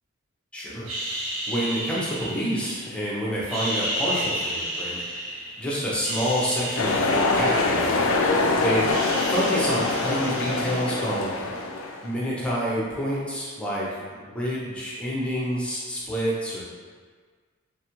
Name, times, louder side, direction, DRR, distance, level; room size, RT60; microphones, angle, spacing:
voice 1, 0.5-0.9 1.5-5.3 5.6-8.2 8.5-8.9 9.3-11.6 12.0-16.6, equal, 5° left, -6 dB, 0.6 m, -28 dB
sound 1, 0.9-3.0 3.4-5.6 5.9-8.3 8.6-11.5, right 1 dB, 70° right, 0.8 m, -32 dB
sound 2, 6.8-12.1, left 3 dB, 65° left, 0.3 m, -24 dB
3.5 x 2.3 x 2.9 m, 1.5 s
head